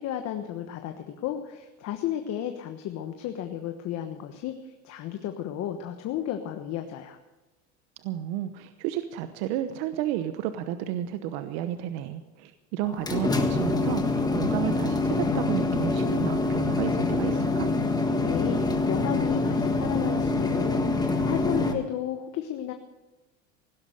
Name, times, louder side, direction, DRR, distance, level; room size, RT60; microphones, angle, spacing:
voice 1, 0.0-7.2 18.2-22.7, left 10 dB, 50° left, 6 dB, 1.3 m, -33 dB
voice 2, 8.0-17.7, right 11 dB, 70° right, 10 dB, 1.0 m, -32 dB
sound 1, 12.8-21.7, left 3 dB, 10° left, 1.6 m, -25 dB
16.5 x 12.0 x 6.7 m, 1.1 s
supercardioid pair, 130°, 34 cm